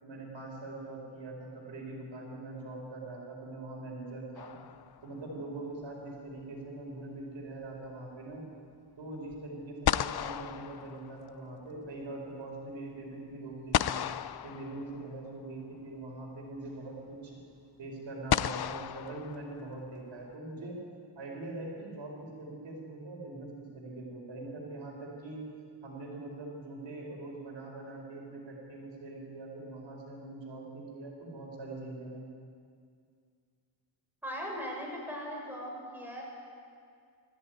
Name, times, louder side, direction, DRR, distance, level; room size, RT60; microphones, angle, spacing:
voice 1, 0.0-4.5 5.0-8.4 9.0-14.0 14.4-17.4 17.8-20.8 21.1-25.4 25.8-32.3, right 2 dB, 70° right, 0 dB, 5.0 m, -42 dB
sound 1, 4.4-5.2 9.3-9.4 9.8-11.6 13.7-15.3 16.7-16.8 18.3-19.9, left 10 dB, 55° left, 0.6 m, -33 dB
voice 2, 34.2-36.2, equal, 5° right, -2 dB, 6.7 m, -39 dB
20.5 x 14.5 x 9.3 m, 2.2 s
cardioid pair, 85°, 46 cm